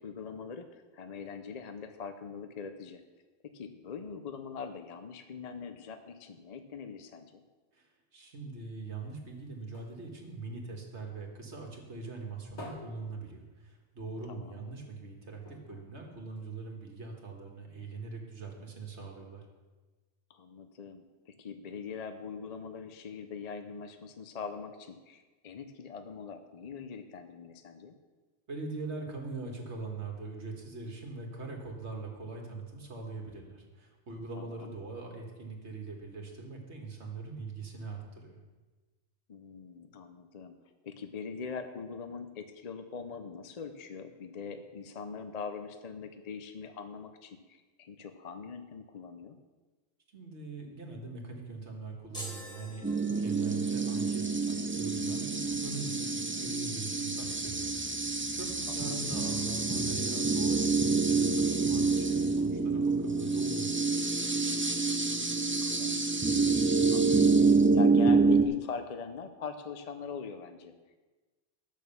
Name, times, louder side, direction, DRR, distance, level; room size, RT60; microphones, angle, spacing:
voice 1, 0.0-3.0 3.4-7.4 14.3-14.6 20.3-28.0 34.4-34.7 39.3-40.6 40.8-49.4 58.7-59.0 65.0-70.7, left 5 dB, 45° left, 7 dB, 0.7 m, -42 dB
voice 2, 7.7-19.4 28.5-38.4 50.1-63.9, right 3 dB, 75° right, 1 dB, 2.0 m, -42 dB
sound 1, 8.8-11.5 11.8-14.1 14.4-14.5 14.8-15.0 15.4-16.9 17.6-17.7, left 1 dB, 80° left, 2.0 m, -51 dB
sound 2, 52.1-53.7, equal, 5° left, 1.7 m, -45 dB
sound 3, 52.8-68.4, right 4 dB, 20° right, 0.3 m, -27 dB
10.5 x 6.5 x 6.9 m, 1.3 s
omnidirectional pair, 1.2 m